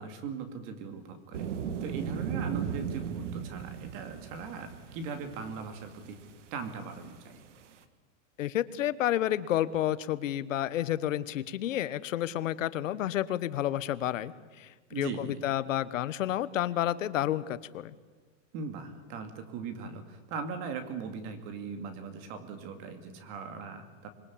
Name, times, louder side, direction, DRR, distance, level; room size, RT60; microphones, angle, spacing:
voice 1, 0.0-1.5 1.8-6.2 6.5-7.4 14.9-15.4 18.5-24.1, right 5 dB, 30° right, 8 dB, 2.3 m, -39 dB
sound 1, 1.3-6.8 7.0-7.1 7.3-7.4 7.6-7.7, right 7 dB, 65° right, 2.0 m, -37 dB
voice 2, 8.4-17.9, left 12 dB, 75° left, 15 dB, 1.2 m, -30 dB
26.0 x 21.5 x 8.5 m, 1.3 s
supercardioid pair, 170°, 39 cm